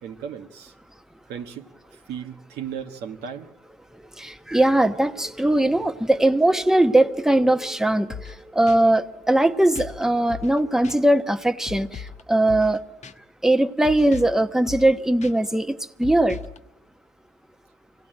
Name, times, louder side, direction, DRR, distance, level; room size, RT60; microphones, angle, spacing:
voice 1, 0.0-0.7 1.3-3.5, right 8 dB, 90° right, 4 dB, 1.5 m, -36 dB
voice 2, 4.2-12.8 13.4-16.4, right 1 dB, 5° right, 8 dB, 1.1 m, -20 dB
sound 1, 8.1-8.4 8.7-8.8 9.8-10.0 10.3-10.6 10.8-11.0 11.7-12.2 12.5-12.8 13.0-13.1 13.8-14.4 14.7-14.9 15.2-15.3 16.0-16.6, left 6 dB, 45° left, 1.1 m, -37 dB
24.5 x 17.5 x 9.1 m, 0.96 s
supercardioid pair, 70°, 16 cm